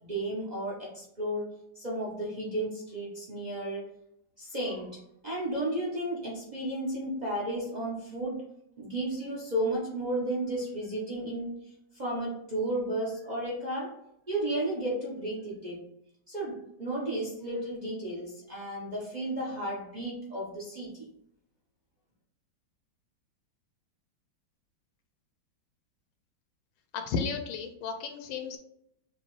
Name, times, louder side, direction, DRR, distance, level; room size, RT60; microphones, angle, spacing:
voice 1, 0.0-3.9 4.4-8.4 8.8-13.9 14.3-15.8 16.3-21.1, right 1 dB, 55° right, -5 dB, 0.4 m, -33 dB
voice 2, 26.9-28.6, left 5 dB, 85° left, 6 dB, 1.4 m, -33 dB
5.1 x 2.3 x 3.1 m, 0.78 s
omnidirectional pair, 2.2 m